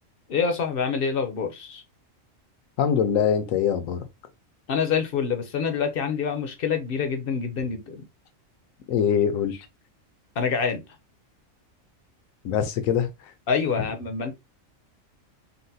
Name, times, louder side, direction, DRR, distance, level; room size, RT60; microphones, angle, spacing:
voice 1, 0.3-1.8 4.7-8.0 10.4-10.8 13.5-14.3, left 6 dB, 55° left, 0.7 m, -26 dB
voice 2, 2.8-4.1 8.9-9.7 12.4-13.1, left 8 dB, 85° left, 1.0 m, -23 dB
3.9 x 2.1 x 2.6 m
omnidirectional pair, 1.4 m